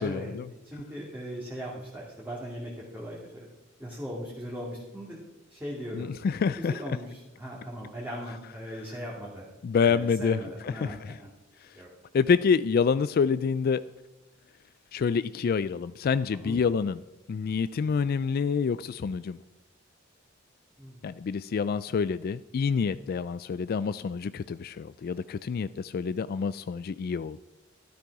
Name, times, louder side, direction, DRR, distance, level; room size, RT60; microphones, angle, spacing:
voice 1, 0.0-0.5 5.9-6.8 8.7-8.8 9.6-11.2 11.6-11.8 12.1-13.8 14.9-17.0 17.3-19.4 21.0-27.4, left 5 dB, 50° left, 15 dB, 0.3 m, -27 dB
voice 2, 0.6-3.4 3.8-5.2 5.5-9.4 9.8-11.3 11.7-11.9 16.3-16.6 20.8-21.1, equal, 10° right, -5 dB, 2.5 m, -39 dB
13.0 x 12.0 x 4.8 m, 1.1 s
head